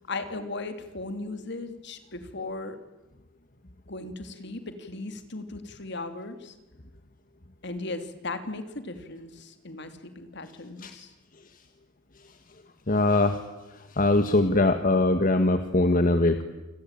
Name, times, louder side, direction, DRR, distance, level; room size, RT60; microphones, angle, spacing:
voice 1, 0.1-2.8 3.9-6.5 7.6-11.1, left 2 dB, 60° left, 9 dB, 2.8 m, -37 dB
voice 2, 12.9-13.4 13.9-16.4, left 2 dB, 45° left, 8 dB, 1.5 m, -22 dB
28.5 x 21.5 x 9.1 m, 1.1 s
head